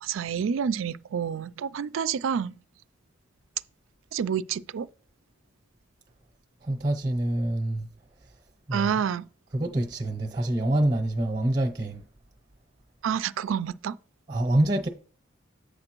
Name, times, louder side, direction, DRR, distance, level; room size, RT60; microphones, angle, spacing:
voice 1, 0.0-2.5 4.1-4.9 8.7-9.2 13.0-14.0, right 7 dB, 75° right, 0.4 m, -28 dB
voice 2, 6.6-7.9 8.7-9.0 9.5-12.0 14.3-14.9, right 1 dB, 30° right, 0.7 m, -26 dB
8.7 x 6.5 x 3.0 m
head